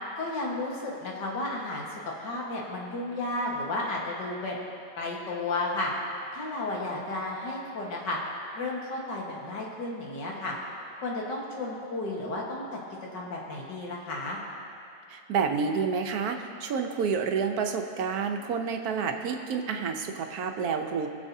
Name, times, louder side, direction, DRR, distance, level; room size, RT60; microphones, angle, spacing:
voice 1, 0.2-1.9 2.2-4.6 5.0-5.9 6.3-8.2 8.5-10.5 11.0-12.8 13.1-14.4, left 2 dB, 80° left, -3 dB, 2.1 m, -33 dB
voice 2, 15.1-21.1, right 6 dB, 65° right, 4 dB, 1.2 m, -29 dB
21.0 x 7.0 x 2.7 m, 2.5 s
omnidirectional pair, 1.8 m